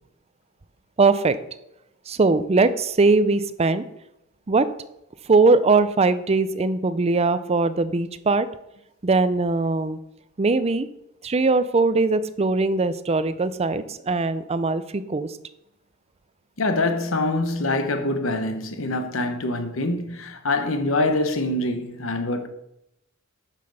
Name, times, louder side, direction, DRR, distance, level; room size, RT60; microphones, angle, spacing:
voice 1, 1.0-1.4 2.1-3.8 4.5-4.7 5.3-8.5 9.0-10.0 10.4-10.9 11.2-15.3, right 3 dB, 30° right, 0.5 m, -20 dB
voice 2, 16.6-22.5, left 2 dB, 75° left, 1.1 m, -25 dB
9.0 x 5.9 x 6.5 m
head